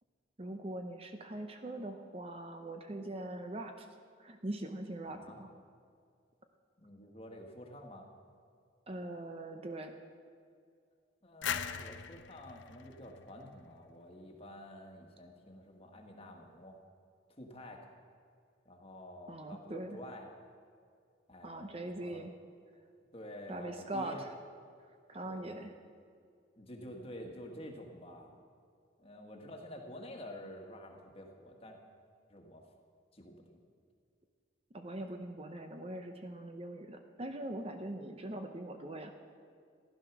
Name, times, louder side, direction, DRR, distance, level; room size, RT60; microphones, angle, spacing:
voice 1, 0.4-3.9 4.2-5.5 8.9-9.9 19.3-20.0 21.4-22.3 23.5-24.2 25.1-25.7 34.7-39.1, right 1 dB, 30° right, 5 dB, 0.7 m, -42 dB
voice 2, 5.0-5.4 6.8-8.1 11.2-16.8 17.3-17.9 18.6-20.3 21.3-22.2 23.1-24.2 25.2-25.8 26.6-28.3 29.0-31.8 32.3-32.6 33.1-33.6, left 1 dB, 30° left, 2 dB, 1.5 m, -49 dB
sound 1, 11.4-14.1, left 8 dB, 70° left, 0.6 m, -40 dB
15.0 x 11.5 x 6.0 m, 2.3 s
head